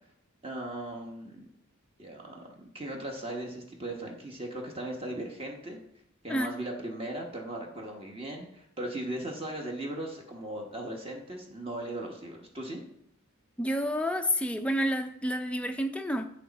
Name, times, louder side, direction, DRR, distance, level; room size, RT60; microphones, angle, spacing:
voice 1, 0.4-1.5 2.0-5.8 6.2-12.8, right 1 dB, 25° right, 0 dB, 1.1 m, -38 dB
voice 2, 13.6-16.2, equal, 5° left, 6 dB, 0.5 m, -29 dB
8.5 x 6.6 x 4.0 m, 0.71 s
head